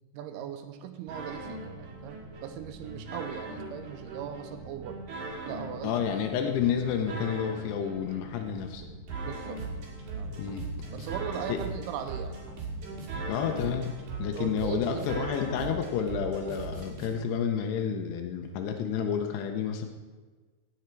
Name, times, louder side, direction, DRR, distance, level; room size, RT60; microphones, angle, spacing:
voice 1, 0.1-5.0 5.5-6.0 9.3-9.6 10.1-10.6 10.9-12.4 14.4-15.3, right 9 dB, 90° right, 7 dB, 2.8 m, -39 dB
sound 1, 1.1-17.1, right 3 dB, 55° right, 3.1 m, -39 dB
voice 2, 5.8-8.9 10.4-10.7 11.0-11.1 11.5-11.6 13.3-19.9, left 7 dB, 90° left, 5 dB, 2.9 m, -30 dB
16.0 x 7.2 x 4.5 m, 1.3 s
omnidirectional pair, 4.6 m